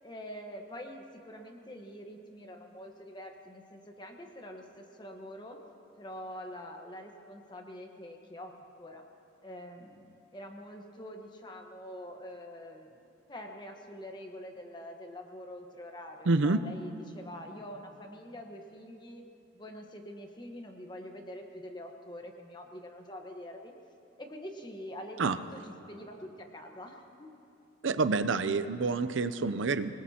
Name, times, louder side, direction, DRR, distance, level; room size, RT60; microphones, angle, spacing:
voice 1, 0.0-5.6 6.0-8.5 8.8-9.0 9.4-13.0 13.3-19.2 19.5-23.7 24.2-27.3, equal, 25° left, 3 dB, 1.2 m, -45 dB
voice 2, 16.3-16.6 25.2-25.4 27.8-29.9, right 3 dB, 75° right, 11 dB, 0.6 m, -27 dB
25.0 x 20.0 x 2.9 m, 2.6 s
head